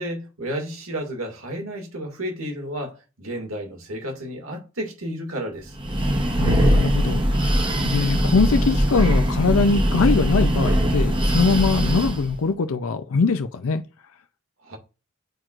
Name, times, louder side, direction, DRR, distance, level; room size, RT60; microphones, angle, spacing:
voice 1, 0.0-5.8 14.6-14.8, equal, 85° right, 2.2 m, -32 dB
Breathing, 5.7-12.3, equal, 25° right, 0.9 m, -21 dB
voice 2, 6.4-13.8, left 4 dB, 85° left, 0.5 m, -22 dB
9.1 x 4.5 x 2.5 m
head